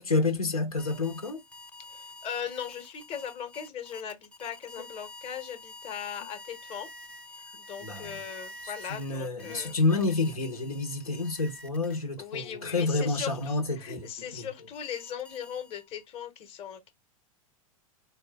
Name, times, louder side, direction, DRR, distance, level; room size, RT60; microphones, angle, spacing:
voice 1, 0.0-1.4 7.8-8.2 8.6-14.5, left 3 dB, 85° left, 1.2 m, -29 dB
sound 1, 0.8-12.2 12.7-16.0, left 1 dB, 5° left, 0.5 m, -48 dB
voice 2, 1.9-6.9 7.4-9.8 12.2-16.9, left 8 dB, 30° left, 1.1 m, -39 dB
4.1 x 2.3 x 3.4 m
figure-of-eight pair, 95°, 18 cm